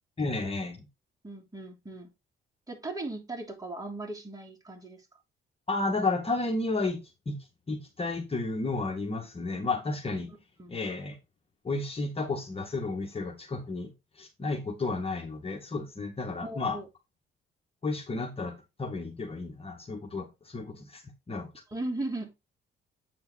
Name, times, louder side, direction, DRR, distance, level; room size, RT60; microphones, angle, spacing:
voice 1, 0.2-0.9 5.7-7.0 7.3-7.4 7.7-10.3 10.7-11.2 11.6-16.8 17.8-21.0 21.3-21.5, left 3 dB, 30° left, 1.9 m, -32 dB
voice 2, 1.2-2.1 2.7-5.0 10.6-10.7 16.4-16.9 21.7-22.3, right 2 dB, 20° right, 3.1 m, -37 dB
8.6 x 4.3 x 4.1 m
cardioid pair, 90°, 20 cm